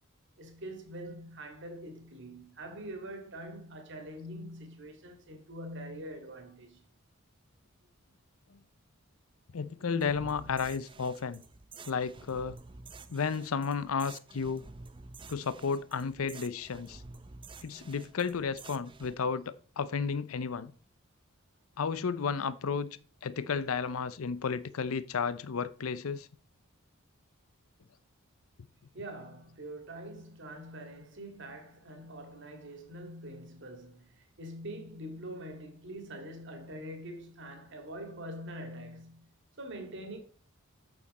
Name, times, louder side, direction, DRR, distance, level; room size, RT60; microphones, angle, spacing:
voice 1, 0.4-6.8 28.9-39.3 39.6-40.2, right 1 dB, 60° right, 2.1 m, -44 dB
voice 2, 9.5-11.4 11.9-12.6 13.1-14.6 15.3-17.0 17.6-20.7 21.8-26.3, left 5 dB, 85° left, 0.6 m, -33 dB
sound 1, 10.0-19.2, right 3 dB, 25° right, 0.5 m, -50 dB
8.7 x 6.7 x 4.2 m
head